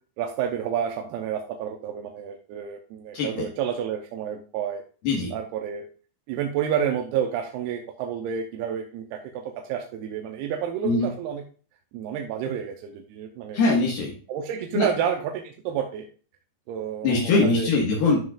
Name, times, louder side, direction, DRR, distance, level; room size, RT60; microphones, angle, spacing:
voice 1, 0.2-4.8 5.3-5.9 6.3-11.4 11.9-13.6 14.3-16.1 16.7-17.7, right 8 dB, 80° right, 3 dB, 2.7 m, -30 dB
voice 2, 13.5-14.1 14.7-14.9 17.0-18.2, left 3 dB, 70° left, -3 dB, 3.2 m, -21 dB
12.5 x 5.6 x 2.4 m, 0.39 s
omnidirectional pair, 4.7 m